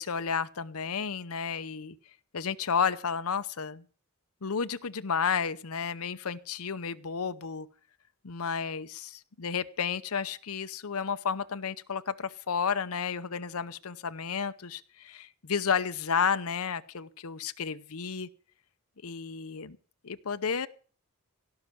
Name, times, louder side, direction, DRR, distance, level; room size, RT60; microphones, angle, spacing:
voice 1, 0.0-1.9 2.3-3.8 4.4-7.7 8.2-18.3 19.0-19.8 20.0-20.7, left 6 dB, 75° left, 12 dB, 0.8 m, -32 dB
17.0 x 5.8 x 9.2 m, 0.41 s
head